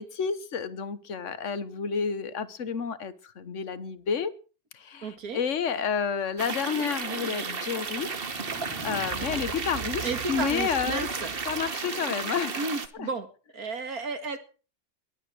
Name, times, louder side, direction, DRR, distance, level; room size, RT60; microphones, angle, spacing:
voice 1, 0.0-4.3 4.7-8.1 8.8-11.1 11.5-12.7 13.0-13.1, left 6 dB, 55° left, 14 dB, 1.5 m, -30 dB
voice 2, 5.0-5.4 10.0-11.3 12.6-13.3 13.5-14.4, right 4 dB, 85° right, 9 dB, 2.6 m, -32 dB
sound 1, 6.1-11.7, right 3 dB, 15° right, 6.2 m, -43 dB
sound 2, 6.4-12.9, right 5 dB, 40° right, 1.4 m, -33 dB
22.0 x 9.0 x 6.4 m, 0.38 s
omnidirectional pair, 1.5 m